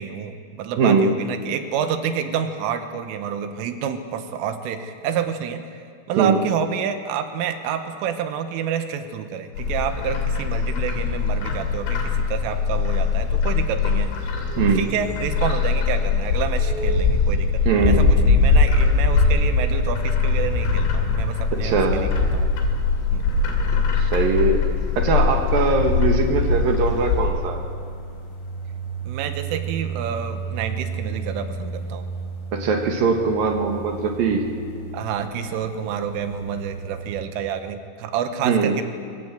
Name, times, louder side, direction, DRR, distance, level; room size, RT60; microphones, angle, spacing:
voice 1, 0.0-5.8 6.1-22.5 23.1-23.3 29.0-32.1 34.9-38.8, right 8 dB, 80° right, 8 dB, 3.7 m, -29 dB
voice 2, 0.8-1.2 6.2-6.4 14.6-14.9 17.7-18.1 21.5-22.1 24.0-24.7 25.0-27.7 32.5-34.4 38.4-38.8, right 4 dB, 60° right, 4 dB, 2.8 m, -21 dB
Bird, 9.6-27.3, left 4 dB, 80° left, 5.2 m, -21 dB
sound 1, 18.8-37.2, right 2 dB, 60° left, 6.3 m, -34 dB
23.5 x 19.0 x 7.8 m, 2.3 s
omnidirectional pair, 5.7 m